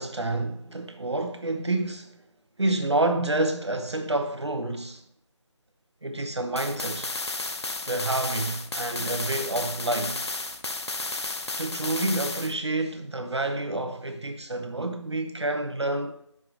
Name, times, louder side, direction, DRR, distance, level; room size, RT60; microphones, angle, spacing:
voice 1, 0.0-2.2 2.6-5.0 6.0-7.1 7.9-10.2 11.6-16.2, right 2 dB, 60° right, 1.1 m, -28 dB
sound 1, 6.6-12.5, left 2 dB, 60° left, 0.6 m, -33 dB
5.9 x 4.9 x 5.0 m
figure-of-eight pair, 175°, 16 cm